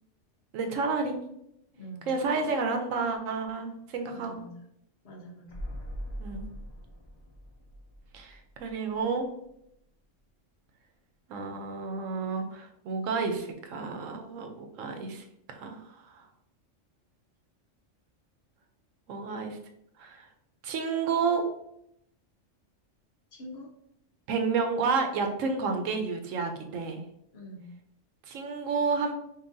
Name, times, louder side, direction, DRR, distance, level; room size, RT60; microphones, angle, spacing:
voice 1, 0.5-1.1 2.1-4.4 6.2-6.5 8.1-9.3 11.3-16.3 19.1-19.6 20.0-20.3 20.6-21.4 24.3-27.0 28.3-29.1, right 4 dB, 85° right, 5 dB, 1.0 m, -30 dB
voice 2, 1.7-2.5 4.1-4.6 5.0-5.5 23.3-23.7 27.3-27.7, equal, 55° left, -1 dB, 1.0 m, -45 dB
sound 1, 5.5-9.2 9.5-9.6, equal, 40° left, 0.4 m, -41 dB
5.4 x 2.5 x 2.6 m, 0.77 s
omnidirectional pair, 1.3 m